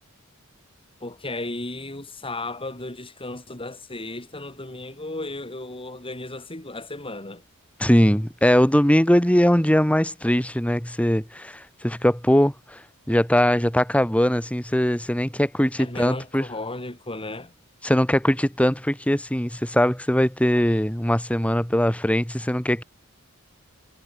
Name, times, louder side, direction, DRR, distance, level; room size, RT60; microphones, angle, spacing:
voice 1, 1.0-7.4 15.8-17.5, left 2 dB, 25° left, 6.2 m, -34 dB
voice 2, 7.8-12.8 13.1-16.4 17.8-22.8, equal, 5° left, 2.4 m, -21 dB
head